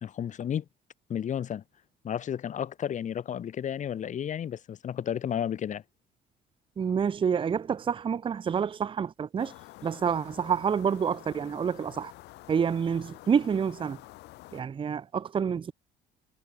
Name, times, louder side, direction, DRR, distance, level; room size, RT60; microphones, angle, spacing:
voice 1, 0.0-0.6 1.1-1.6 2.0-5.8, left 9 dB, 45° left, 1.6 m, -32 dB
voice 2, 6.8-9.5 9.8-12.1 12.5-14.0 14.5-15.7, right 7 dB, 30° right, 0.8 m, -28 dB
sound 1, 9.4-14.6, left 19 dB, 85° left, 1.8 m, -49 dB
cardioid pair, 110°, 17 cm